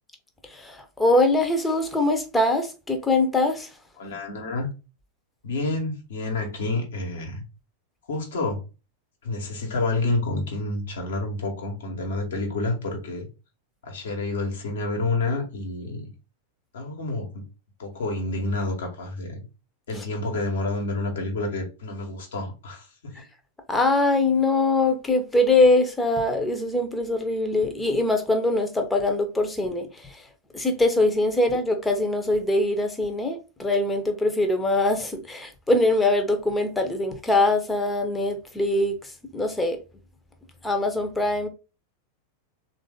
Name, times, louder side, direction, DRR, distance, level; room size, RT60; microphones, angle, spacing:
voice 1, 0.4-3.7 19.9-20.0 23.1-23.2 23.7-30.3 30.5-39.8 40.6-41.5, left 2 dB, 10° left, 0.8 m, -23 dB
voice 2, 4.0-4.7 5.4-7.4 8.1-8.6 9.2-13.3 13.8-16.0 16.7-17.5 17.8-19.4 19.9-23.2, left 2 dB, 60° left, 1.3 m, -29 dB
3.5 x 2.6 x 3.7 m
figure-of-eight pair, 90°, 0 cm